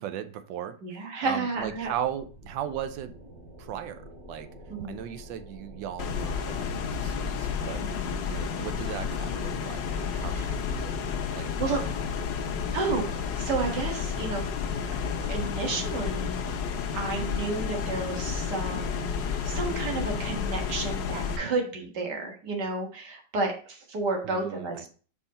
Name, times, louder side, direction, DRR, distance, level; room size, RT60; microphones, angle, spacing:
voice 1, 0.0-3.1 3.6-4.5 4.9-7.8 8.3-10.9 11.3-11.5 24.2-24.9, right 10 dB, 85° right, 10 dB, 1.3 m, -37 dB
voice 2, 0.8-1.9 4.7-5.0 7.8-8.2 10.3-10.5 11.6-11.9 12.7-13.1 13.4-14.4 15.3-16.4 16.9-19.2 19.4-24.8, right 3 dB, 65° right, 1 dB, 2.0 m, -31 dB
sound 1, 1.5-20.8, equal, 50° right, 2.6 m, -47 dB
sound 2, 6.0-21.4, left 6 dB, 80° left, 1.5 m, -31 dB
5.4 x 4.9 x 4.1 m, 0.41 s
omnidirectional pair, 1.9 m